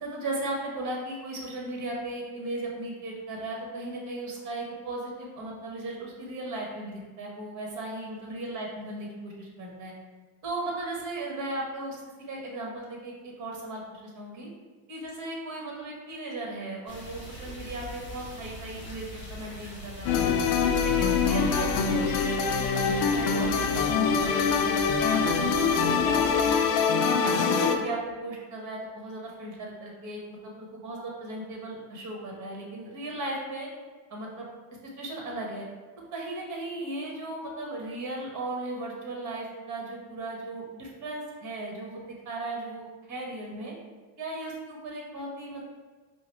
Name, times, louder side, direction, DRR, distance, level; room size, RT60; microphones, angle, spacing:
voice 1, 0.0-9.9 10.4-14.5 14.9-20.3 20.8-26.8 27.2-33.7 34.1-34.5 35.0-35.6 36.1-43.7 44.2-45.7, right 2 dB, 40° right, -1 dB, 1.2 m, -37 dB
sound 1, 16.9-26.5, left 1 dB, 25° left, 1.0 m, -42 dB
sound 2, 20.1-27.8, left 5 dB, 75° left, 0.5 m, -24 dB
4.7 x 2.0 x 3.0 m, 1.4 s
supercardioid pair, 110°, 43 cm